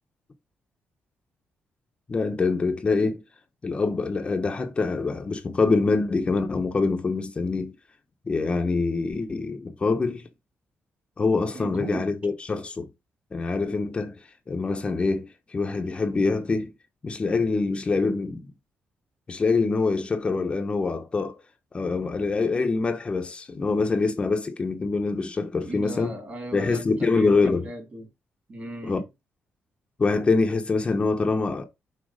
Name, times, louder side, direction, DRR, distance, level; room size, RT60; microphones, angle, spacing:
voice 1, 2.1-3.2 3.6-7.8 8.3-10.3 11.2-12.9 13.3-14.2 14.5-16.7 17.0-18.5 19.3-21.4 21.7-26.1 26.5-27.6 28.8-29.0 30.0-31.6, left 3 dB, 25° left, 0.9 m, -25 dB
voice 2, 11.5-12.1 25.6-28.1 28.5-29.0, right 1 dB, 35° right, 2.4 m, -37 dB
6.4 x 4.2 x 4.8 m
cardioid pair, 155°, 4 cm